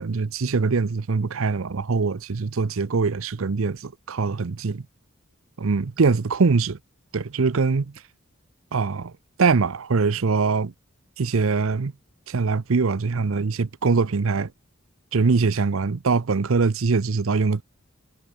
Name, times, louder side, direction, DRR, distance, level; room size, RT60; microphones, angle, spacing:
voice 1, 0.0-4.8 5.6-6.8 7.1-7.9 8.7-9.1 9.4-10.7 11.2-11.9 12.3-14.5 15.1-17.6, right 4 dB, 70° right, 0.6 m, -23 dB
head